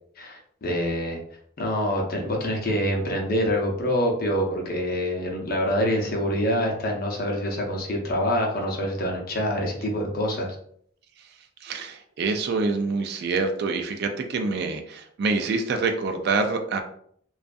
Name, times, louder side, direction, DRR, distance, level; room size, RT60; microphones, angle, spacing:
voice 1, 0.2-1.2 1.6-10.6, equal, 45° left, 0 dB, 0.6 m, -26 dB
voice 2, 11.6-16.8, right 4 dB, 55° right, 6 dB, 0.3 m, -26 dB
2.5 x 2.3 x 2.2 m, 0.64 s
head